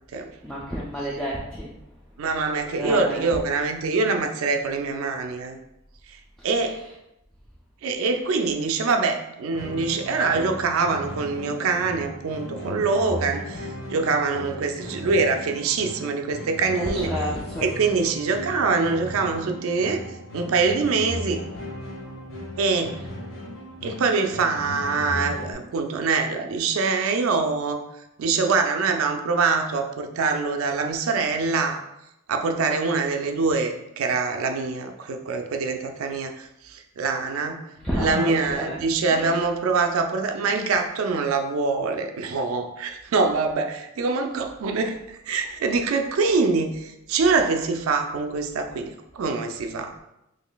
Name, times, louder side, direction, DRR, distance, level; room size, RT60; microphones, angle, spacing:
voice 1, 0.4-1.7 2.8-3.2 16.7-17.7 37.8-38.8 39.1-39.3, equal, ahead, -7 dB, 0.4 m, -30 dB
voice 2, 2.2-5.6 6.4-6.8 7.8-17.1 17.6-20.0 20.3-21.4 22.6-22.9 23.8-27.8 28.2-31.8 32.3-37.6 38.0-49.9, right 4 dB, 80° right, 5 dB, 0.4 m, -24 dB
sound 1, 9.5-25.5, equal, 75° left, 1.1 m, -36 dB
3.8 x 3.2 x 2.2 m, 0.86 s
head